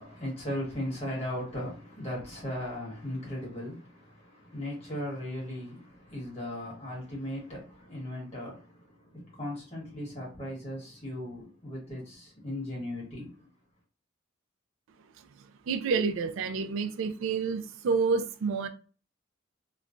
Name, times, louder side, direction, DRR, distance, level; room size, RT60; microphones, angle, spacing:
voice 1, 0.0-13.5, left 1 dB, 30° left, 1.4 m, -37 dB
voice 2, 15.2-18.7, right 5 dB, 80° right, 0.3 m, -29 dB
3.0 x 2.2 x 2.5 m
head